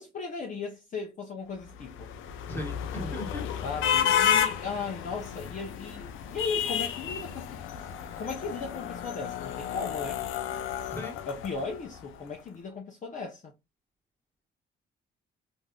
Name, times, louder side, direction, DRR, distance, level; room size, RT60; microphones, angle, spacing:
voice 1, 0.0-2.1 3.6-7.7 8.2-10.2 11.3-13.5, left 4 dB, 40° left, 0.6 m, -37 dB
sound 1, 1.7-12.0, left 9 dB, 85° left, 0.5 m, -31 dB
voice 2, 2.5-3.5 10.9-11.2, left 1 dB, 10° left, 1.2 m, -37 dB
3.4 x 2.6 x 2.2 m
cardioid pair, 90°, 20 cm